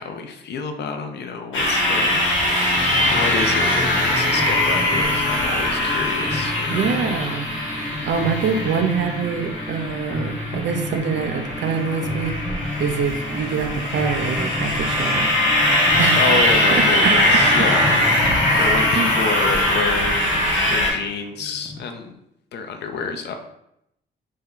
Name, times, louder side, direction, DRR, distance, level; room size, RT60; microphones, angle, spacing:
voice 1, 0.0-2.2 3.1-6.9 16.2-20.4 20.7-22.2 22.5-23.4, left 5 dB, 60° left, 6 dB, 0.5 m, -28 dB
sound 1, 1.5-20.9, left 1 dB, 80° left, 1.1 m, -21 dB
sound 2, 2.7-21.8, left 2 dB, 5° left, 0.5 m, -32 dB
voice 2, 6.7-7.5 8.1-15.3 16.0-16.4 16.7-17.1 18.5-19.1, right 6 dB, 65° right, 5 dB, 0.5 m, -25 dB
2.6 x 2.2 x 3.6 m, 0.80 s
cardioid pair, 90°, 20 cm